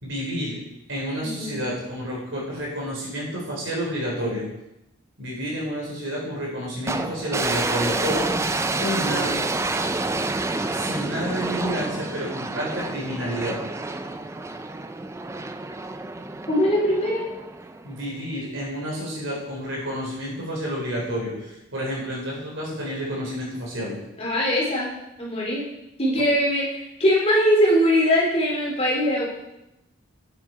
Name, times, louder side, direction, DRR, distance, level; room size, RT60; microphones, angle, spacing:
voice 1, 0.0-0.6 0.9-4.4 5.2-9.3 10.7-13.6 17.8-23.9, equal, 70° right, -4 dB, 4.3 m, -30 dB
voice 2, 1.2-1.5 16.5-17.2 24.2-24.9 25.2-25.7 26.0-29.3, equal, 30° left, -3 dB, 2.5 m, -21 dB
sound 1, 6.9-18.1, right 2 dB, 15° right, 0.4 m, -28 dB
9.1 x 7.6 x 4.7 m, 0.90 s
head